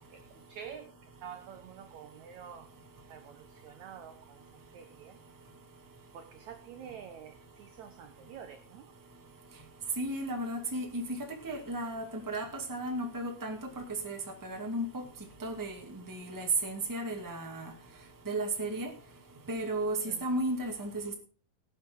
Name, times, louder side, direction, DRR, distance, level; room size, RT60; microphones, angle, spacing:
voice 1, 0.5-0.9 1.2-2.7 3.1-3.4 3.6-4.2 4.7-5.2 6.1-7.3 7.6-8.8 20.1-20.2, right 8 dB, 70° right, 9 dB, 1.8 m, -47 dB
voice 2, 10.0-13.6 14.0-15.0 15.4-17.7 18.2-18.9 19.5-21.1, right 2 dB, 5° right, 2 dB, 1.5 m, -34 dB
18.5 x 7.9 x 3.8 m, 0.38 s
omnidirectional pair, 4.3 m